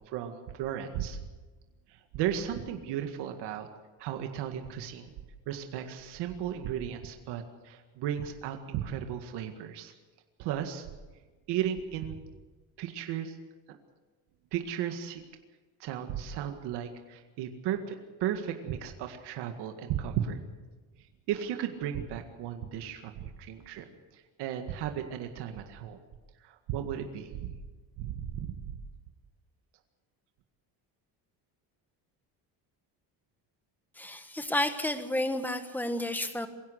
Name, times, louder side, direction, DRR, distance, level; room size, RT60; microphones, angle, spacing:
voice 1, 0.1-1.2 1.9-3.7 4.0-5.1 5.5-9.9 10.4-10.9 11.5-12.2 12.8-13.4 13.7-13.8 14.5-15.2 15.8-20.4 21.3-23.9 24.1-26.0 26.4-27.5 28.0-28.8, right 10 dB, 80° right, 5 dB, 2.0 m, -35 dB
voice 2, 33.9-36.5, left 1 dB, 5° left, 9 dB, 1.4 m, -31 dB
23.0 x 16.5 x 7.9 m, 1.3 s
cardioid pair, 145°, 40 cm